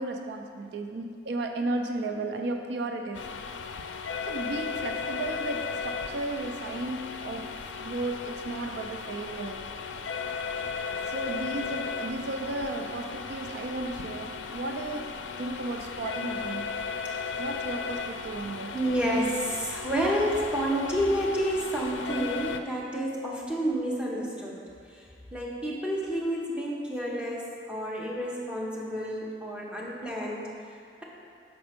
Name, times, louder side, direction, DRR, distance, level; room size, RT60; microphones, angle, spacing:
voice 1, 0.0-3.3 4.3-9.7 11.1-16.9 17.4-18.8, right 2 dB, 70° right, 5 dB, 0.4 m, -34 dB
sound 1, 3.1-22.6, left 5 dB, 90° left, 0.4 m, -36 dB
voice 2, 18.7-24.6 24.9-25.0 25.3-31.0, equal, 5° right, -4 dB, 0.8 m, -30 dB
6.1 x 4.4 x 5.0 m, 2.3 s
head